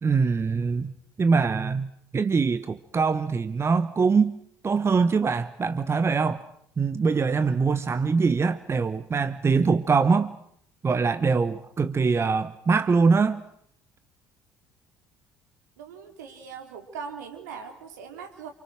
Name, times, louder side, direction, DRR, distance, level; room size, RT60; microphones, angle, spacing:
voice 1, 0.0-4.4 4.6-6.5 6.8-10.3 10.8-13.4, right 5 dB, 25° right, 1.2 m, -23 dB
voice 2, 15.8-18.5, right 6 dB, 70° right, 3.6 m, -40 dB
29.0 x 27.5 x 6.3 m
figure-of-eight pair, 55°, 10 cm